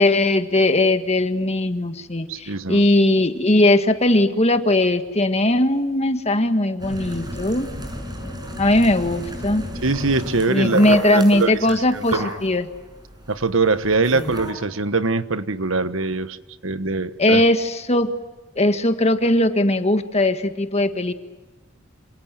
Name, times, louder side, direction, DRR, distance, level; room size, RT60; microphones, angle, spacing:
voice 1, 0.0-7.7 8.6-9.6 10.5-12.7 14.1-14.3 17.2-18.1 18.5-21.1, left 1 dB, 30° left, 9 dB, 1.7 m, -19 dB
voice 2, 2.3-2.8 9.8-12.3 13.3-16.4 16.6-17.4, right 3 dB, 70° right, 12 dB, 1.4 m, -23 dB
sound 1, 6.8-14.5, equal, 20° right, 5.8 m, -33 dB
27.5 x 27.0 x 7.7 m, 1.2 s
head